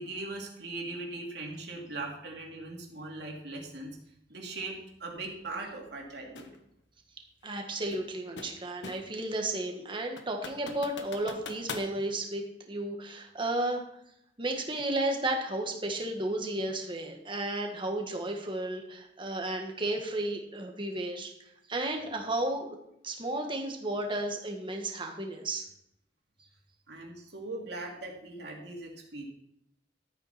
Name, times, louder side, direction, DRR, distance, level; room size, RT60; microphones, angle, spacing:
voice 1, 0.0-3.9 4.3-6.5 26.9-29.3, right 2 dB, 65° right, 0 dB, 2.9 m, -40 dB
sound 1, 6.4-6.6 7.9-9.2 9.6-9.7 10.2-11.9, left 4 dB, 85° left, 1.3 m, -42 dB
voice 2, 7.4-13.8 14.4-21.3 21.7-22.8 23.0-25.6, right 1 dB, 30° right, 3 dB, 1.8 m, -33 dB
13.5 x 9.1 x 4.4 m, 0.76 s
head